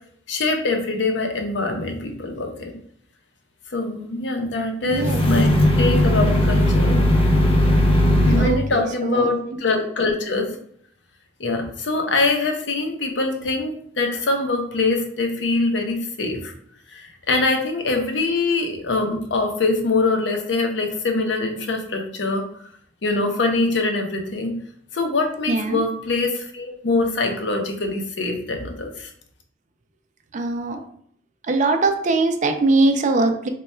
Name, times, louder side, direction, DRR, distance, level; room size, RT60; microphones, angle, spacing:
voice 1, 0.3-2.7 3.7-5.5 5.8-7.0 8.3-10.5 11.4-16.5 16.9-22.5 23.0-24.6 24.9-29.1, left 3 dB, 75° left, 3 dB, 0.7 m, -23 dB
voice 2, 4.8-5.2 8.2-9.3 25.5-25.8 30.3-30.8 31.5-33.5, right 2 dB, 40° right, 6 dB, 0.4 m, -21 dB
sound 1, 4.9-8.6, left 1 dB, 30° left, 0.5 m, -17 dB
3.2 x 2.2 x 4.2 m, 0.64 s
head